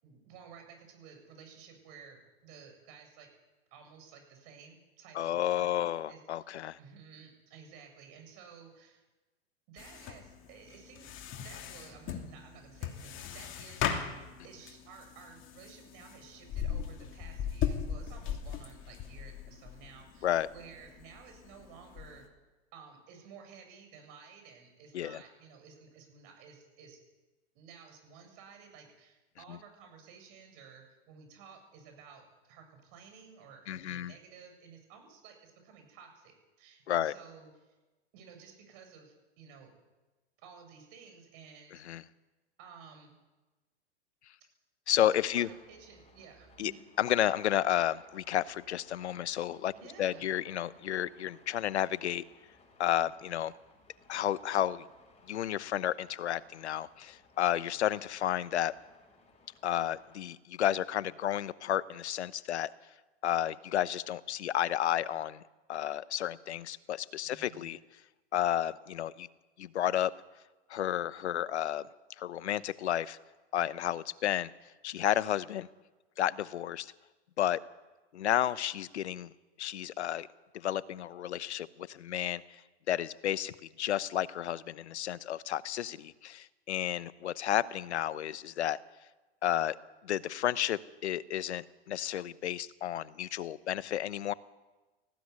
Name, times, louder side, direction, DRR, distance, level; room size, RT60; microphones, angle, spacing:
voice 1, 0.0-3.3 3.7-6.5 6.8-9.0 9.7-14.0 14.4-22.3 22.7-27.0 27.5-37.7 38.1-39.7 40.4-41.8 42.6-43.2 45.0-46.9 49.7-50.3 67.2-67.7, right 6 dB, 55° right, 5 dB, 7.5 m, -54 dB
voice 2, 5.1-6.8 20.2-20.5 24.9-25.2 29.5-29.6 33.7-34.1 36.9-37.1 41.8-42.0 44.9-45.5 46.6-46.7 47.0-49.7 50.0-52.2 52.8-53.5 54.1-54.8 55.3-58.7 59.6-62.7 63.2-65.4 65.7-67.8 68.3-69.3 69.6-70.1 70.7-71.9 72.2-73.2 73.5-74.5 74.8-75.7 76.2-76.9 77.4-77.6 78.1-79.3 79.6-80.3 80.5-82.4 82.9-88.8 89.4-89.8 90.0-94.3, left 11 dB, 85° left, 17 dB, 1.0 m, -32 dB
sound 1, 9.8-22.3, left 8 dB, 35° left, 2.9 m, -39 dB
sound 2, 45.1-60.2, left 3 dB, 20° left, 6.3 m, -63 dB
19.5 x 15.5 x 9.6 m, 1.2 s
hypercardioid pair, 115°, 33 cm